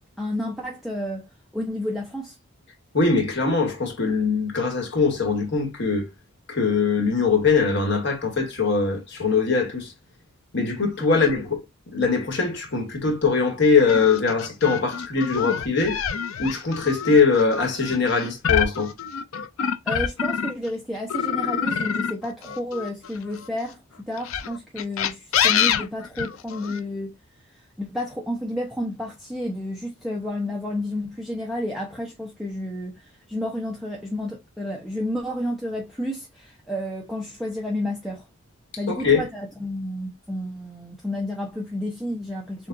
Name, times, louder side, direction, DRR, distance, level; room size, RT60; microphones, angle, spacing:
voice 1, 0.2-1.3 1.5-2.3 11.1-11.3 19.8-23.8 24.1-27.1 27.8-38.2 38.8-42.7, left 1 dB, ahead, 0.7 m, -31 dB
voice 2, 2.9-6.1 6.5-9.9 10.5-11.6 11.9-16.0 16.4-18.9 38.9-39.2, left 4 dB, 55° left, 1.5 m, -22 dB
sound 1, 13.9-20.7 21.1-23.5 24.2-26.8, left 8 dB, 70° left, 0.5 m, -26 dB
6.6 x 2.5 x 2.6 m
head